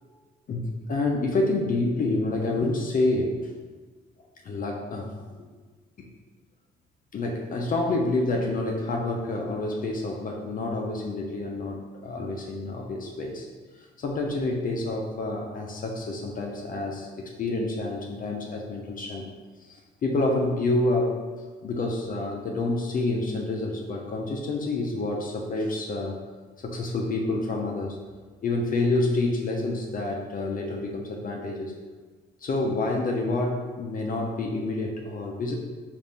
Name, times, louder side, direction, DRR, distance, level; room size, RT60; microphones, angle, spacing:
voice 1, 0.5-3.5 4.4-5.2 7.1-13.5 14.0-19.2 19.6-21.2 21.6-26.2 26.6-28.0 28.4-31.7 32.4-35.5, left 2 dB, 45° left, 0 dB, 0.5 m, -28 dB
4.0 x 2.5 x 3.4 m, 1.4 s
cardioid pair, 90°, 20 cm